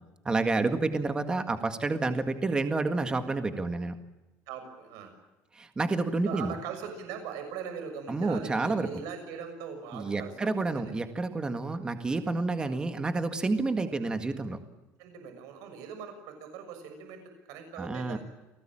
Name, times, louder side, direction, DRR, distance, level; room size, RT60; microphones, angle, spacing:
voice 1, 0.3-4.0 5.5-6.5 8.1-8.9 9.9-14.6 17.8-18.2, right 3 dB, 15° right, 8 dB, 1.8 m, -29 dB
voice 2, 4.5-5.1 6.2-10.9 12.6-12.8 15.0-18.2, right 6 dB, 80° right, 7 dB, 6.5 m, -41 dB
29.5 x 19.0 x 8.9 m, 1.1 s
cardioid pair, 175°, 6 cm